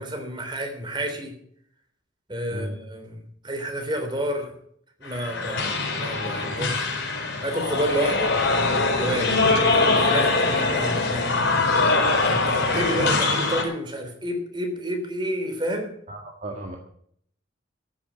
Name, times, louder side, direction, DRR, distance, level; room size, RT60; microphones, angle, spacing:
voice 1, 0.0-1.3 2.3-3.1 3.4-4.5 5.0-7.0 7.4-8.3 9.0-11.3 12.1-15.9, equal, 25° right, 4 dB, 3.3 m, -30 dB
sound 1, 5.0-13.6, left 3 dB, 60° left, 5.3 m, -23 dB
sound 2, 9.5-12.4, left 3 dB, 40° left, 4.3 m, -41 dB
voice 2, 16.1-16.8, right 1 dB, 40° right, 1 dB, 1.7 m, -34 dB
14.5 x 7.2 x 9.5 m, 0.66 s
head